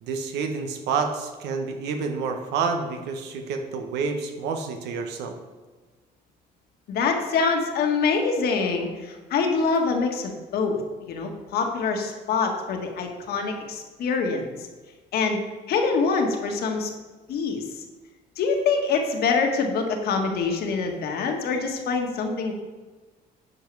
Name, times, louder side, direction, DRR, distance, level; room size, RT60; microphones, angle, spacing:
voice 1, 0.0-5.3, right 5 dB, 85° right, 5 dB, 1.2 m, -28 dB
voice 2, 6.9-10.8 11.1-14.5 15.1-15.4 15.7-16.9 17.3-17.6 18.4-22.5, left 4 dB, 70° left, 3 dB, 1.5 m, -25 dB
10.0 x 5.5 x 4.7 m, 1.3 s
cardioid pair, 110°, 17 cm